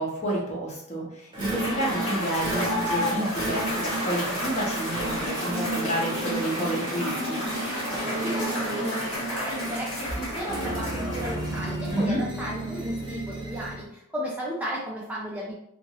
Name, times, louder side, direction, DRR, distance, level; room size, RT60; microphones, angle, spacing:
voice 1, 0.0-7.4 11.9-12.2, right 1 dB, 30° left, -4 dB, 0.9 m, -30 dB
sound 1, 1.3-13.9, right 1 dB, 25° right, 0.8 m, -33 dB
Cheering / Applause / Crowd, 1.4-11.9, left 1 dB, 65° left, 1.3 m, -32 dB
sound 2, 3.8-9.2, right 2 dB, 55° right, 0.6 m, -40 dB
voice 2, 8.2-15.5, equal, 5° right, -5 dB, 0.4 m, -34 dB
2.7 x 2.6 x 2.9 m, 0.78 s
head